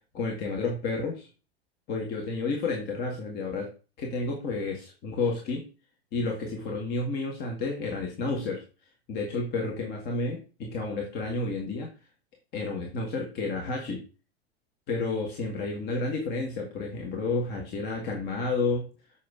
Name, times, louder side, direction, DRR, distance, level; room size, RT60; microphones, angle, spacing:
voice 1, 0.1-1.3 1.9-3.7 4.0-5.6 6.1-8.6 9.1-11.9 12.5-14.0 14.9-18.9, left 3 dB, 30° left, 0 dB, 1.6 m, -31 dB
7.3 x 5.7 x 3.6 m, 0.33 s
figure-of-eight pair, 95°, 31 cm